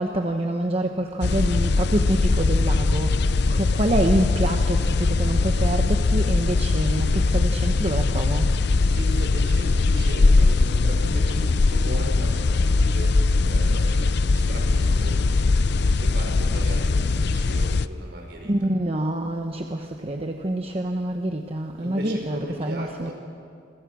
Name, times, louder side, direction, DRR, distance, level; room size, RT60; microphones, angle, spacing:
voice 1, 0.0-8.5 18.4-23.1, right 1 dB, 30° right, 4 dB, 1.0 m, -26 dB
sound 1, 1.2-17.9, left 3 dB, 60° left, 0.6 m, -21 dB
voice 2, 8.9-15.3 16.0-18.5 21.8-23.1, equal, 60° right, 2 dB, 5.3 m, -37 dB
27.5 x 24.5 x 6.2 m, 2.3 s
head